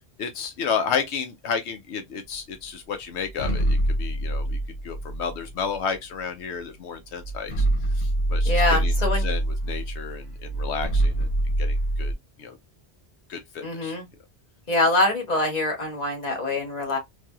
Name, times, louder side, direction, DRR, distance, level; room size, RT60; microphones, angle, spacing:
voice 1, 0.2-8.9 9.2-11.3 11.6-12.1 12.4-12.6 13.3-14.0, left 6 dB, 85° left, 0.9 m, -32 dB
sound 1, 3.3-6.0 6.8-6.9 7.2-12.1, right 1 dB, 70° left, 1.2 m, -25 dB
voice 2, 8.4-9.3 13.6-14.0 14.7-17.0, left 2 dB, 40° left, 1.3 m, -24 dB
3.3 x 2.6 x 2.2 m
omnidirectional pair, 1.1 m